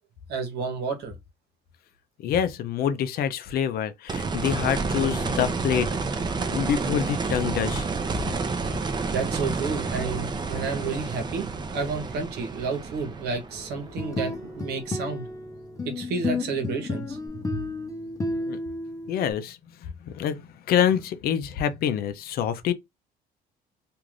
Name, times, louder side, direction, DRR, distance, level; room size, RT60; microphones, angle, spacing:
voice 1, 0.3-1.1 9.1-15.2 15.8-17.2, right 4 dB, 75° right, 1.0 m, -31 dB
voice 2, 2.2-5.9 6.5-7.9 18.4-18.6 19.1-22.7, left 9 dB, 65° left, 0.5 m, -26 dB
sound 1, 4.1-15.0 17.3-17.4, right 4 dB, 25° right, 0.5 m, -30 dB
sound 2, 13.8-19.3, left 2 dB, 20° left, 0.7 m, -32 dB
2.5 x 2.4 x 3.1 m
cardioid pair, 110°, 17 cm